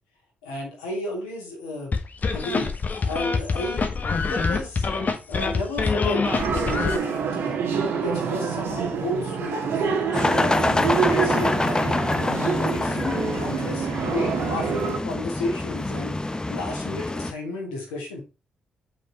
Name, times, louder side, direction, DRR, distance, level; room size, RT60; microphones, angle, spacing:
voice 1, 0.4-1.9 2.3-2.7 3.1-4.8 5.3-7.6 8.0-10.6 10.9-12.0 12.7-16.2 16.5-18.2, left 2 dB, 85° left, -2 dB, 2.9 m, -32 dB
sound 1, 1.9-7.0, left 4 dB, 45° left, 1.5 m, -25 dB
sound 2, 6.2-15.0, right 6 dB, 65° right, 1.7 m, -27 dB
sound 3, 10.1-17.3, left 2 dB, 20° left, 1.0 m, -26 dB
6.8 x 6.1 x 4.3 m, 0.29 s
hypercardioid pair, 40°, 4 cm